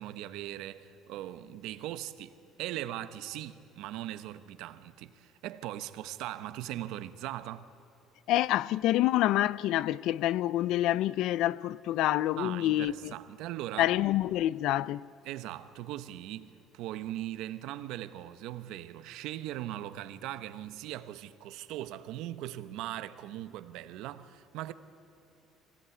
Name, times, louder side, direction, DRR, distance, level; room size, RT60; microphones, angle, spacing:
voice 1, 0.0-7.7 12.4-14.0 15.2-24.7, right 13 dB, 70° right, 1.0 m, -40 dB
voice 2, 8.3-13.1 13.8-15.1, left 14 dB, 60° left, 0.4 m, -27 dB
23.5 x 17.0 x 9.6 m
cardioid pair, 170°, 0 cm